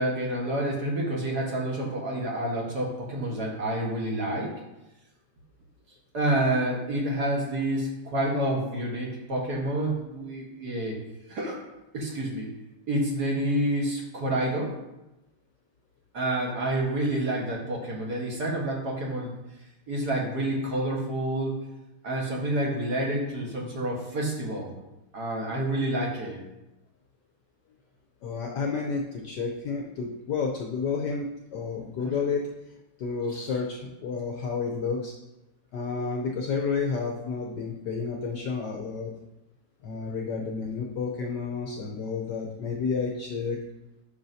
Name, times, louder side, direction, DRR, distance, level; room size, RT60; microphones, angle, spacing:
voice 1, 0.0-4.5 6.1-11.0 11.3-11.6 11.9-12.5 12.9-14.7 16.1-19.3 19.9-21.6 22.0-24.7 25.1-26.4 32.0-32.1 33.3-33.5, right 1 dB, 50° right, -2 dB, 1.7 m, -28 dB
voice 2, 28.2-32.4 33.0-35.1 35.7-39.1 39.8-43.6, left 5 dB, 65° left, 1 dB, 1.1 m, -30 dB
10.0 x 5.6 x 2.7 m, 0.95 s
omnidirectional pair, 2.4 m